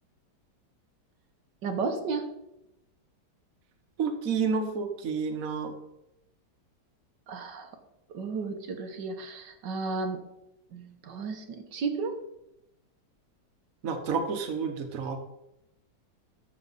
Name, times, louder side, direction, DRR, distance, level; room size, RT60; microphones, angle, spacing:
voice 1, 1.6-2.4 7.3-7.8 8.1-10.3 10.7-12.2, right 4 dB, 85° right, 5 dB, 1.8 m, -33 dB
voice 2, 4.0-5.7 13.8-15.2, right 5 dB, 55° right, 6 dB, 1.5 m, -30 dB
12.5 x 7.3 x 4.1 m, 0.86 s
omnidirectional pair, 1.9 m